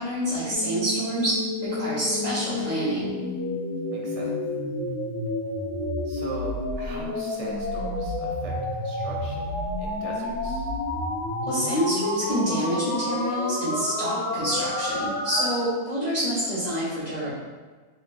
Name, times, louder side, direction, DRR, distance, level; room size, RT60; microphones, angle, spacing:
voice 1, 0.0-3.1 11.4-17.3, equal, 30° left, -12 dB, 1.0 m, -27 dB
sound 1, 0.5-15.5, left 1 dB, 65° left, 1.2 m, -30 dB
voice 2, 3.9-4.4 6.0-10.7, right 3 dB, 85° right, -3 dB, 1.5 m, -40 dB
3.7 x 3.3 x 2.5 m, 1.4 s
omnidirectional pair, 1.8 m